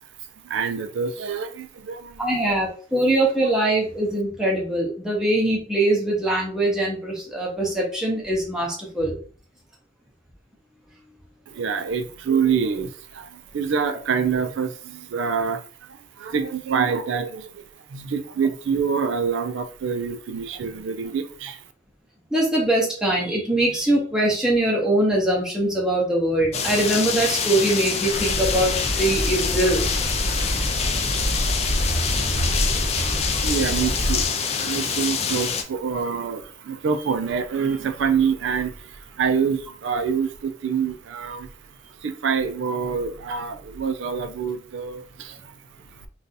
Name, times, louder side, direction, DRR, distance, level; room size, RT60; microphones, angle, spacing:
voice 1, 0.4-2.4 11.5-17.6 17.9-21.6 33.3-45.5 45.9-46.0, right 6 dB, 65° right, 0.4 m, -26 dB
voice 2, 2.2-9.2 22.3-29.9, right 1 dB, 5° right, 0.6 m, -22 dB
sound 1, 26.5-35.6, left 6 dB, 30° left, 0.3 m, -26 dB
sound 2, 28.1-34.3, equal, 50° right, 0.7 m, -26 dB
2.6 x 2.3 x 3.9 m
head